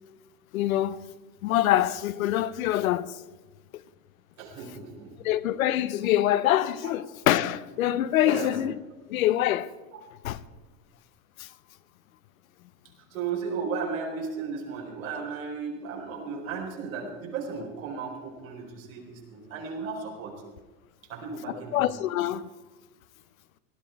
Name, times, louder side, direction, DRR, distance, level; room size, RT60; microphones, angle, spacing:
voice 1, 0.5-1.0 1.4-3.1 5.2-8.8 9.1-9.7 10.2-10.4 11.4-11.5 21.7-22.5, left 13 dB, 85° left, 0.8 m, -25 dB
voice 2, 4.4-5.1 6.8-6.9 8.2-8.6 9.9-10.0 13.1-20.4 21.1-21.8, right 5 dB, 85° right, 4.7 m, -35 dB
18.5 x 12.5 x 4.7 m
supercardioid pair, 125°, 40 cm